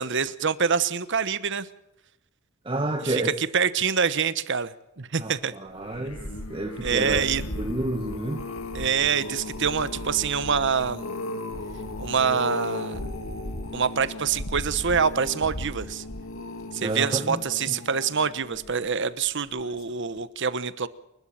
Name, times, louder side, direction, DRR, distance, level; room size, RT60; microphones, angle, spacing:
voice 1, 0.0-1.7 3.0-5.5 6.8-7.4 8.7-11.1 12.0-13.0 13.7-16.0 16.7-20.9, right 6 dB, 60° right, 15 dB, 1.1 m, -26 dB
voice 2, 2.6-3.3 5.2-6.2 6.5-7.2 7.6-8.4 16.8-17.4, right 1 dB, 25° right, 3 dB, 1.6 m, -29 dB
sound 1, 5.7-19.1 19.6-19.9 20.2-20.3, left 1 dB, 80° left, 2.2 m, -35 dB
29.0 x 12.0 x 7.5 m, 0.90 s
head